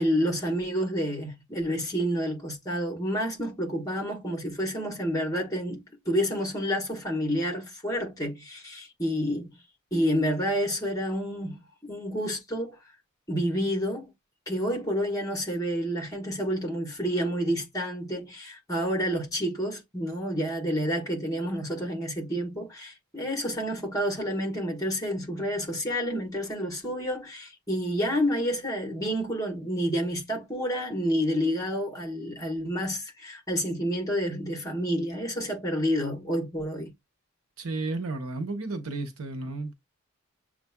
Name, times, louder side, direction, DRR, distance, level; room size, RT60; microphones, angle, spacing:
voice 1, 0.0-9.6 9.9-12.8 13.3-14.1 14.5-36.9, equal, 15° left, 1.4 m, -29 dB
voice 2, 37.6-39.7, right 3 dB, 85° right, 1.0 m, -32 dB
7.3 x 2.5 x 2.2 m
head